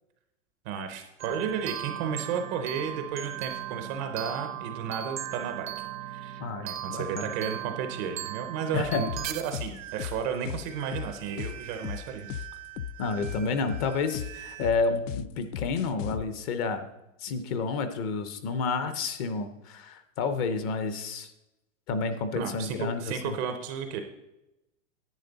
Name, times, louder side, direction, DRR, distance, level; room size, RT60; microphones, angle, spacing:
voice 1, 0.7-5.7 6.1-12.3 22.4-24.0, right 7 dB, 25° right, 7 dB, 0.4 m, -33 dB
sound 1, 1.2-14.7, right 12 dB, 85° right, 0.9 m, -39 dB
voice 2, 6.4-7.3 8.7-9.0 13.0-16.8 17.2-21.3 21.9-23.4, left 4 dB, 30° left, 10 dB, 0.6 m, -30 dB
sound 2, 8.8-16.2, left 10 dB, 75° left, 0.6 m, -37 dB
10.5 x 8.5 x 3.9 m, 0.93 s
supercardioid pair, 160°, 38 cm